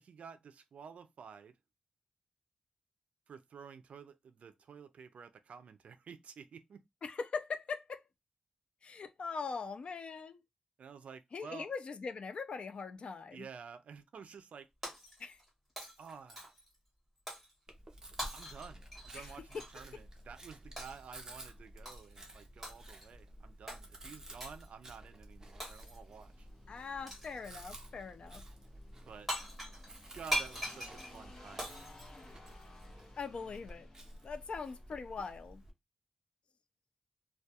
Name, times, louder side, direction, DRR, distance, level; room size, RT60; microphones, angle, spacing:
voice 1, 0.0-1.6 3.3-6.8 10.8-11.7 13.3-14.7 16.0-16.5 18.3-26.5 29.1-29.3 30.2-31.7, right 6 dB, 75° right, 0.4 m, -51 dB
voice 2, 7.0-8.0 8.8-10.4 11.3-13.5 15.2-15.4 19.1-19.3 19.5-19.6 26.7-28.4 33.2-33.9 34.2-35.6, left 5 dB, 55° left, 0.3 m, -41 dB
Shatter, 14.8-15.5 15.8-16.7 17.3-17.5 18.2-19.8 20.8-21.1 21.8-22.2 22.6-23.1 23.7-23.8 24.4-24.7 25.6-26.1 27.1-27.4 29.0-29.1 29.3-32.9, equal, ahead, 1.1 m, -41 dB
Chewing mastication, 17.7-35.7, right 1 dB, 25° right, 0.6 m, -53 dB
sound 1, 26.0-35.7, left 2 dB, 30° left, 0.8 m, -59 dB
2.2 x 2.2 x 2.7 m
wide cardioid pair, 160°, 2 cm